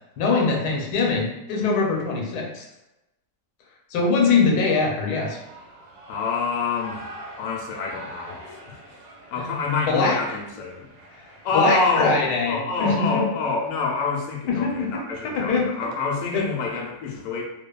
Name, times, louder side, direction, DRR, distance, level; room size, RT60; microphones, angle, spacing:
voice 1, 0.2-2.6 3.9-5.4 9.4-9.5 9.9-10.2 11.1-11.2 11.5-13.3 14.5-15.7 16.3-16.4, left 4 dB, 90° left, 0 dB, 1.2 m, -23 dB
Shout / Cheering, 4.8-12.5, right 1 dB, 70° right, 1.1 m, -44 dB
voice 2, 6.1-8.8 9.3-10.9 11.4-17.4, left 4 dB, 65° left, -1 dB, 0.9 m, -27 dB
2.8 x 2.2 x 2.2 m, 0.93 s
omnidirectional pair, 1.7 m